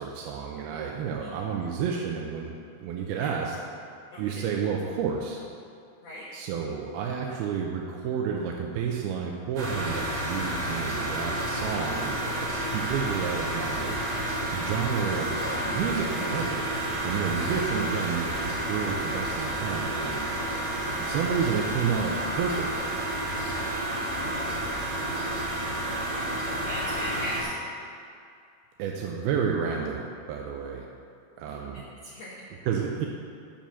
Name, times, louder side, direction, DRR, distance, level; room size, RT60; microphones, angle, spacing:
voice 1, 0.0-3.6 4.2-5.4 6.3-14.0 14.5-16.6 17.0-20.3 21.0-22.9 28.8-30.9 31.4-31.9 32.7-33.1, right 6 dB, 80° right, 0 dB, 2.4 m, -30 dB
sound 1, 9.6-27.4, right 1 dB, 45° right, 3.1 m, -30 dB
voice 2, 26.5-27.6 31.7-32.5, equal, 85° left, -4 dB, 1.4 m, -38 dB
10.5 x 7.1 x 7.1 m, 2.4 s
omnidirectional pair, 5.0 m